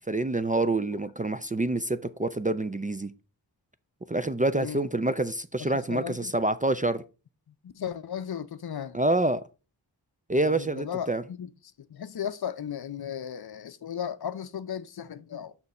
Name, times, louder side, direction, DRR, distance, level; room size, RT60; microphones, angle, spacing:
voice 1, 0.1-3.1 4.1-7.0 8.9-9.4 10.3-11.2, right 2 dB, 20° right, 0.3 m, -27 dB
voice 2, 5.6-6.3 7.6-9.0 10.4-11.5 11.9-15.5, left 8 dB, 60° left, 0.6 m, -35 dB
6.6 x 5.8 x 4.1 m
wide cardioid pair, 85°, 42 cm